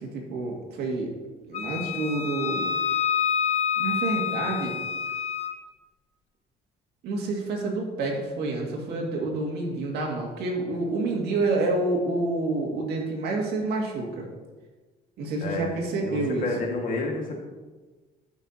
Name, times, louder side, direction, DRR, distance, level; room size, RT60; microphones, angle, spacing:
voice 1, 0.0-1.1 1.5-2.6 3.8-4.8 7.0-14.3 15.2-16.5, right 2 dB, 75° right, -1 dB, 2.0 m, -28 dB
Wind instrument woodwind instrument, 1.5-5.6, left 8 dB, 40° left, 0.6 m, -27 dB
voice 2, 16.0-17.4, left 3 dB, 55° left, 1 dB, 1.7 m, -30 dB
13.0 x 5.5 x 2.8 m, 1.3 s
cardioid pair, 110°, 17 cm